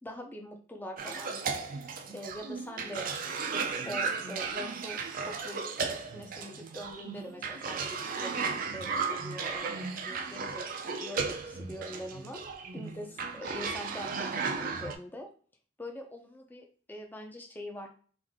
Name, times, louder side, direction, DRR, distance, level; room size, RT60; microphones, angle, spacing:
voice 1, 0.0-1.5 2.1-3.1 3.4-8.3 8.7-12.4 12.7-15.3 15.8-17.9, equal, 10° left, 2 dB, 0.5 m, -43 dB
Cough, 1.0-14.9, right 5 dB, 45° right, 0.4 m, -35 dB
3.4 x 2.6 x 3.5 m, 0.43 s
head